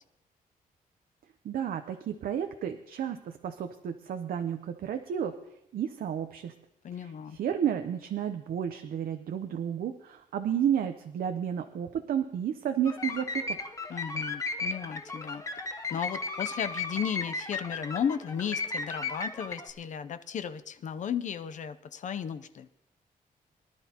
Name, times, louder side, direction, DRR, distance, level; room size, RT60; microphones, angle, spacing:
voice 1, 1.4-5.3 5.7-6.5 6.9-13.4, right 9 dB, 70° right, 7 dB, 0.7 m, -32 dB
voice 2, 6.8-7.4 13.9-15.4 15.9-22.7, left 8 dB, 55° left, 11 dB, 0.6 m, -35 dB
sound 1, 12.8-19.7, left 3 dB, 20° left, 0.9 m, -35 dB
23.5 x 11.5 x 2.9 m, 0.85 s
wide cardioid pair, 155°, 15 cm